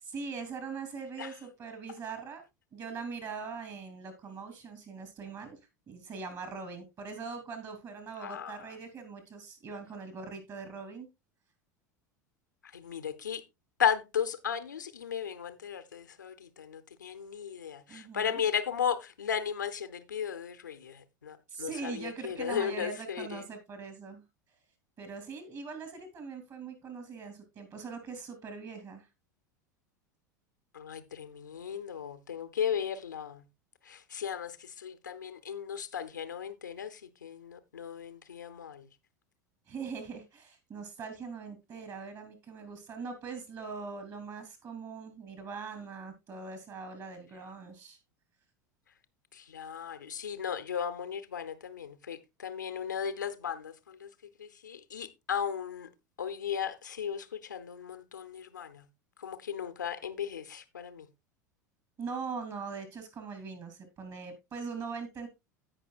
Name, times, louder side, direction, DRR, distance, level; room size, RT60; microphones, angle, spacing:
voice 1, 0.0-2.4 2.7-5.6 5.9-11.1 17.9-18.4 21.5-24.2 25.0-29.1 39.7-48.0 62.0-65.3, right 5 dB, 35° right, 3.1 m, -41 dB
voice 2, 8.2-8.7 12.6-13.4 13.8-23.5 30.7-33.5 33.8-38.9 49.3-54.1 54.4-55.9 56.2-58.9 59.2-61.1, left 8 dB, 75° left, 0.9 m, -36 dB
16.5 x 5.6 x 2.4 m
figure-of-eight pair, 80°, 10 cm